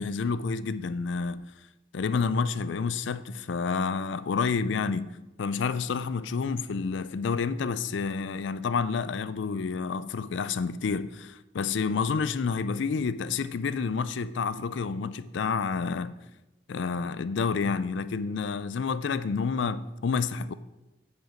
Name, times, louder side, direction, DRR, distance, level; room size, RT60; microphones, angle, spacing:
voice 1, 0.0-1.4 1.9-16.2 16.7-20.5, left 5 dB, 75° left, 0.4 m, -29 dB
9.2 x 5.1 x 5.1 m
head